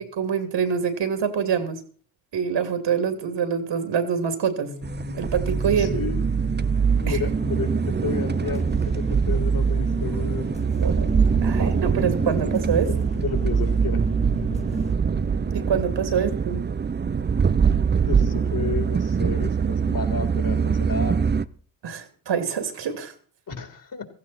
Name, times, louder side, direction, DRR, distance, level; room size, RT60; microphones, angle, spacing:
voice 1, 0.2-1.8 2.3-4.7 5.1-5.9 7.1-7.2 11.4-12.9 15.5-16.6 21.8-23.1, right 7 dB, 60° right, 9 dB, 2.8 m, -25 dB
sound 1, 4.6-14.9, left 3 dB, 15° left, 2.0 m, -36 dB
sound 2, 4.8-21.4, right 6 dB, 20° right, 0.7 m, -23 dB
voice 2, 5.7-6.2 7.0-8.7 8.9-10.5 12.9-14.0 16.1-16.2 18.0-21.2 23.5-24.0, left 5 dB, 40° left, 6 dB, 3.6 m, -32 dB
sound 3, 10.3-12.2, right 5 dB, 40° right, 2.4 m, -36 dB
16.0 x 15.0 x 4.3 m, 0.42 s
hypercardioid pair, 45°, 50 cm